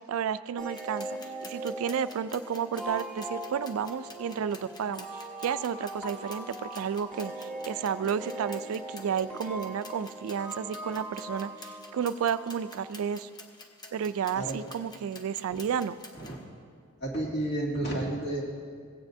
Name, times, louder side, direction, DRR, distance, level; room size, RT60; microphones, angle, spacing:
voice 1, 0.1-1.1 1.4-5.1 5.4-13.3 13.9-15.9, right 7 dB, 75° right, 14 dB, 0.3 m, -32 dB
sound 1, 0.6-16.4, left 2 dB, 20° left, 0.7 m, -50 dB
sound 2, 0.6-13.0, right 1 dB, ahead, 1.7 m, -41 dB
voice 2, 17.0-18.4, right 1 dB, 50° left, -4 dB, 2.2 m, -31 dB
17.0 x 9.0 x 2.7 m, 2.1 s
head